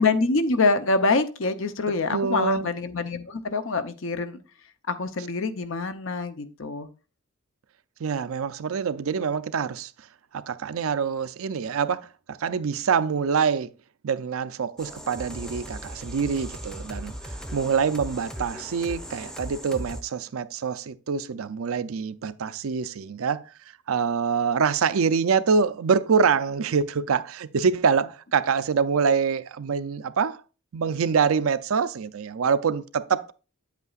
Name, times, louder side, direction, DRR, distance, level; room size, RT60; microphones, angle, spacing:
voice 1, 0.0-4.4 4.9-6.9, left 3 dB, 65° left, 0.7 m, -25 dB
voice 2, 2.1-2.7 8.0-9.9 10.3-13.7 14.0-17.1 17.5-23.4 23.9-30.4 30.7-33.3, right 6 dB, 75° right, 0.5 m, -25 dB
sound 1, 14.8-20.0, equal, 5° left, 0.6 m, -38 dB
8.7 x 8.2 x 2.4 m
head